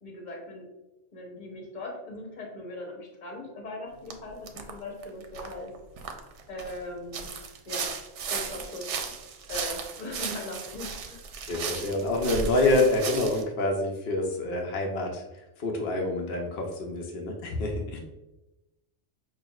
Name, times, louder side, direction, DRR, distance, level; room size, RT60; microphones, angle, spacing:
voice 1, 0.0-0.7 1.1-5.7 6.1-6.2 6.5-7.3 7.7-7.9 8.3-8.9 9.5-11.3, left 1 dB, 45° left, 0 dB, 1.0 m, -39 dB
sound 1, 4.1-4.2 4.5-4.7 5.0-6.8 7.1-13.4, right 5 dB, 80° right, 0.9 m, -35 dB
voice 2, 11.5-18.0, left 2 dB, 60° left, 0 dB, 0.8 m, -27 dB
6.1 x 2.4 x 2.3 m, 1.0 s
omnidirectional pair, 1.2 m